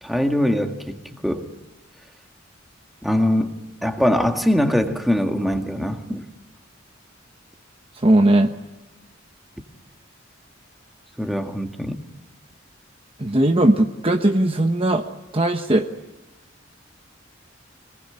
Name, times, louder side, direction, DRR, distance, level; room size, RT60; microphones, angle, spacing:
voice 1, 0.0-1.0 1.2-1.5 3.0-6.3 11.2-12.0, equal, ahead, 4 dB, 1.8 m, -22 dB
voice 2, 8.0-8.5 13.2-15.0 15.3-15.9, right 1 dB, 30° right, 5 dB, 1.1 m, -18 dB
26.0 x 19.5 x 9.9 m, 1.1 s
head